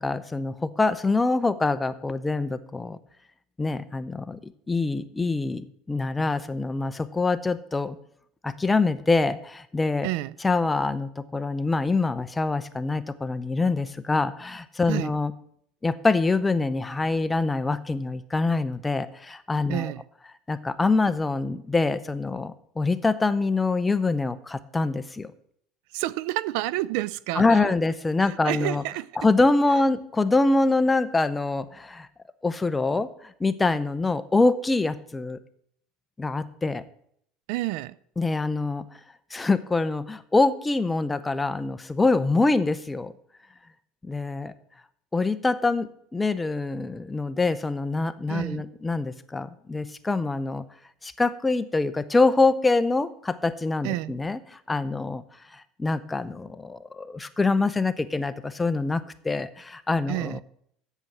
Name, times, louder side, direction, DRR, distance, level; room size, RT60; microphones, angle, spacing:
voice 1, 0.0-3.0 3.6-8.0 8.4-10.1 10.4-15.3 15.8-19.9 20.5-25.3 27.4-28.8 29.2-32.1 32.4-35.4 36.2-36.8 38.2-38.8 39.3-43.1 44.0-44.5 45.1-50.6 51.0-54.4 54.7-55.2 55.5-60.4, left 3 dB, 15° left, 0.7 m, -25 dB
voice 2, 10.0-10.3 14.9-15.1 19.7-20.0 25.9-27.7 28.2-29.1 37.5-38.0 48.3-48.6 53.8-54.1 60.1-60.4, right 17 dB, 75° right, 0.4 m, -29 dB
8.1 x 7.1 x 7.5 m
supercardioid pair, 110°, 0 cm